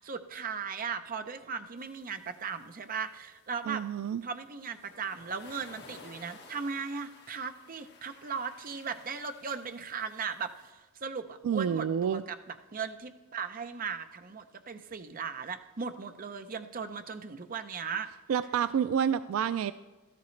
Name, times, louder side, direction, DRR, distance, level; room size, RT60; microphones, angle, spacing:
voice 1, 0.0-3.9 4.2-18.1, right 6 dB, 45° right, 8 dB, 0.6 m, -37 dB
sound 1, 1.8-10.7, left 4 dB, 55° left, 1.3 m, -55 dB
voice 2, 3.7-4.2 11.4-12.2 18.3-19.7, right 8 dB, 75° right, 13 dB, 0.3 m, -28 dB
13.5 x 12.5 x 3.2 m, 1.2 s
head